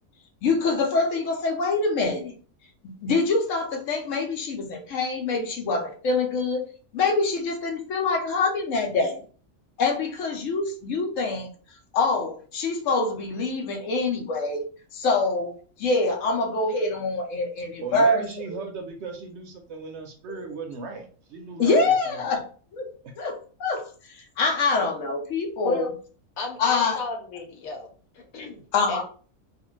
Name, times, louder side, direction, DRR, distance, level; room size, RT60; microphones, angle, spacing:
voice 1, 0.4-2.3 2.8-6.6 6.9-9.2 9.8-11.5 11.9-14.7 14.9-18.2 18.5-18.6 21.6-22.4 22.7-22.9 23.2-25.9 26.6-27.0 28.7-29.0, left 3 dB, 70° left, 3 dB, 1.0 m, -25 dB
voice 2, 17.8-22.4 23.0-23.1, right 4 dB, 65° right, 4 dB, 0.7 m, -37 dB
voice 3, 26.4-28.6 28.9-29.0, left 3 dB, 90° left, 2 dB, 1.2 m, -33 dB
2.5 x 2.4 x 3.0 m, 0.40 s
omnidirectional pair, 1.4 m